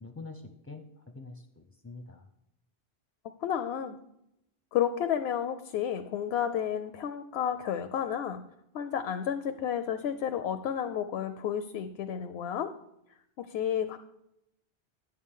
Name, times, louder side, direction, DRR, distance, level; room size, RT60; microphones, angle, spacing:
voice 1, 0.0-2.3, left 3 dB, 20° left, 6 dB, 0.4 m, -46 dB
voice 2, 3.4-4.0 4.7-8.4 8.7-12.7 13.4-14.0, left 9 dB, 85° left, 9 dB, 0.8 m, -31 dB
11.0 x 8.8 x 3.7 m, 0.82 s
omnidirectional pair, 1.0 m